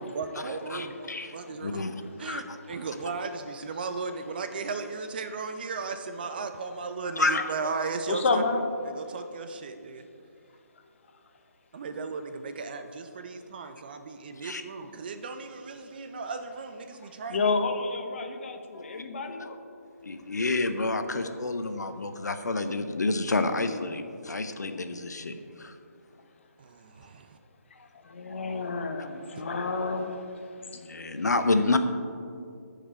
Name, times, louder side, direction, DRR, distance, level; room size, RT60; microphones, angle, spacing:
voice 1, 0.0-1.8 2.2-8.4 8.8-10.0 11.7-17.5 26.6-27.4, right 4 dB, 35° right, 8 dB, 0.6 m, -36 dB
voice 2, 0.7-1.9 2.2-2.4 7.2-7.4 14.4-14.6 18.7-19.0 20.0-25.7 30.7-31.8, left 3 dB, 85° left, 8 dB, 0.8 m, -29 dB
voice 3, 8.1-8.6 17.3-19.6 28.0-30.4, left 3 dB, 45° left, 6 dB, 1.0 m, -29 dB
15.0 x 5.0 x 4.4 m, 2.4 s
hypercardioid pair, 160°, 9 cm